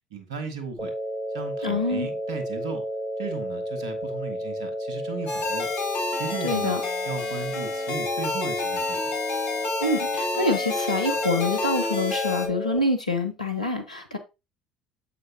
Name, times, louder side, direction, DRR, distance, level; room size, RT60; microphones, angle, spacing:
voice 1, 0.1-0.9 1.3-2.8 3.2-5.7 6.2-6.7 7.0-9.1, right 5 dB, 70° right, 1.5 m, -36 dB
sound 1, 0.8-12.8, equal, 20° right, 2.4 m, -32 dB
voice 2, 1.6-2.1 6.4-6.8 9.8-14.2, left 2 dB, 90° left, 1.0 m, -26 dB
sound 2, 5.3-12.5, left 4 dB, 60° left, 2.0 m, -30 dB
7.8 x 5.7 x 2.8 m
figure-of-eight pair, 60°, 4 cm